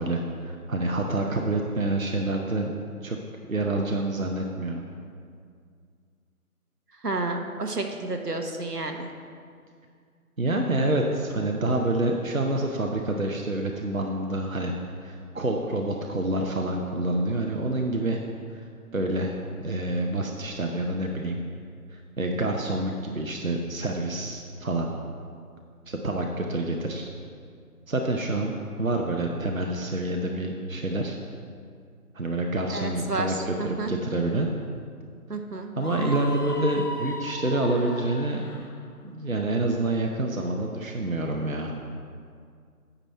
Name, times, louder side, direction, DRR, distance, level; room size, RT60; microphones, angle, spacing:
voice 1, 0.0-2.7 3.0-3.2 3.5-4.8 10.4-14.7 15.0-18.2 18.5-19.3 19.6-21.4 21.9-24.9 25.9-27.1 27.9-28.5 28.8-31.2 32.1-34.5 35.8-38.4 39.0-41.7, right 2 dB, 60° right, 1 dB, 0.7 m, -27 dB
voice 2, 7.0-9.1 32.7-33.9 35.3-35.7, right 2 dB, 85° right, 4 dB, 1.1 m, -31 dB
Screaming, 35.8-38.8, left 2 dB, 80° left, 0.9 m, -36 dB
9.1 x 6.0 x 4.3 m, 2.2 s
figure-of-eight pair, 180°, 46 cm